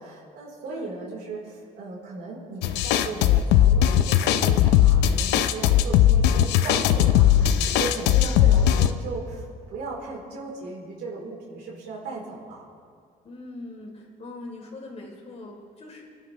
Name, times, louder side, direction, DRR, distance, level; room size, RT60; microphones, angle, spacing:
voice 1, 0.0-12.6, right 3 dB, 75° right, -3 dB, 3.8 m, -37 dB
sound 1, 2.6-8.9, left 11 dB, 90° left, 0.7 m, -19 dB
voice 2, 7.7-9.0 13.2-16.0, left 2 dB, 40° left, 0 dB, 3.4 m, -41 dB
26.0 x 11.5 x 3.2 m, 2.2 s
cardioid pair, 110°, 17 cm